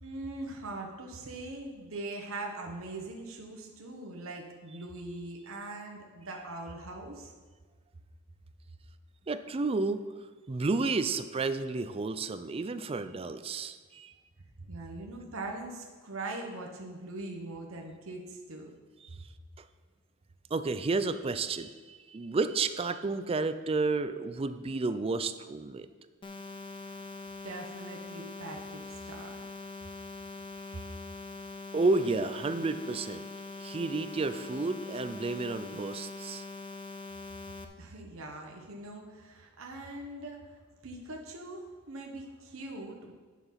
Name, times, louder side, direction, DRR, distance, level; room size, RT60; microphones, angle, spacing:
voice 1, 0.0-7.3 14.6-18.7 26.8-27.1 27.4-29.4 30.7-31.0 37.4-40.6 40.8-43.1, right 2 dB, 80° right, 1 dB, 1.2 m, -42 dB
voice 2, 9.3-10.0 10.5-14.1 19.0-19.2 19.6-19.7 20.5-25.9 31.7-33.3 33.6-36.5, right 3 dB, 30° right, 11 dB, 0.4 m, -31 dB
sound 1, 26.2-37.6, left 3 dB, 25° left, 0.6 m, -43 dB
9.6 x 5.9 x 5.7 m, 1.4 s
head